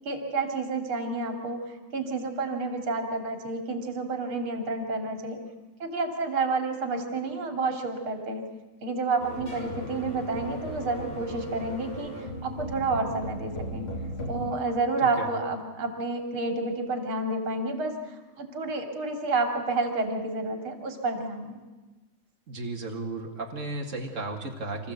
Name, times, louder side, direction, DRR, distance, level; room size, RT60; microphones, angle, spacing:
voice 1, 0.1-5.4 5.8-8.4 8.8-13.9 14.3-21.6, right 3 dB, 80° right, 4 dB, 3.5 m, -30 dB
sound 1, 9.2-14.5, equal, 85° left, 3.9 m, -37 dB
voice 2, 22.5-24.9, right 2 dB, 40° right, 3 dB, 2.4 m, -34 dB
26.0 x 14.5 x 8.2 m, 1.2 s
omnidirectional pair, 2.3 m